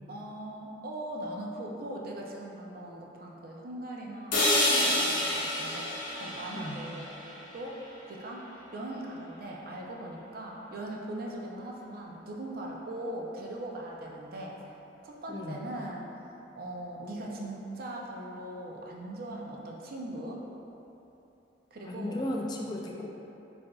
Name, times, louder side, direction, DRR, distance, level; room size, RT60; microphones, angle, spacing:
voice 1, 0.1-14.8 15.0-20.4 21.7-22.3, right 1 dB, 55° right, -2 dB, 0.5 m, -40 dB
sound 1, 4.3-8.3, left 1 dB, 50° left, 0.9 m, -29 dB
voice 2, 6.5-6.9 15.3-15.6 21.8-23.1, left 1 dB, 25° left, -1 dB, 0.3 m, -35 dB
7.4 x 2.6 x 2.3 m, 2.9 s
head